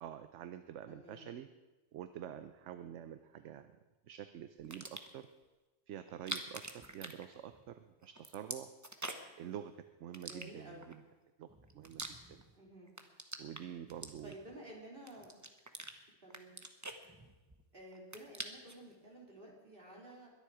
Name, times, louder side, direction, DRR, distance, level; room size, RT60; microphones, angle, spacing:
voice 1, 0.0-1.5 1.9-3.7 4.1-5.3 5.9-8.7 9.4-9.7 10.0-11.0 11.4-11.5 11.7-12.4 13.4-14.3, right 10 dB, 75° right, 10 dB, 1.0 m, -47 dB
voice 2, 0.9-1.3 10.3-10.9 12.6-12.9 14.2-15.3 16.2-16.5 17.7-20.3, right 1 dB, 45° right, -2 dB, 3.6 m, -52 dB
sound 1, 4.6-5.2 6.1-7.8 8.0-9.4 10.1-10.9 11.5-12.6 12.9-14.6 15.1-15.9 16.3-17.6 17.9-18.8, right 2 dB, 15° right, 0.9 m, -45 dB
22.0 x 10.5 x 4.9 m, 1.1 s
omnidirectional pair, 1.3 m